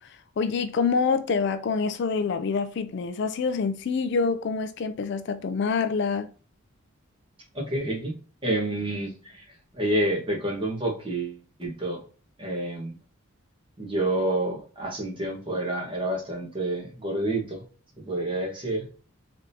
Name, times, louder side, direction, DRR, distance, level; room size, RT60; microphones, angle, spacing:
voice 1, 0.0-6.3, left 5 dB, 55° left, 0.3 m, -26 dB
voice 2, 7.5-8.1 8.4-9.4 9.8-12.0 12.4-13.0 13.8-17.6 18.1-18.9, right 1 dB, 25° right, 1.4 m, -28 dB
3.8 x 3.4 x 2.7 m
head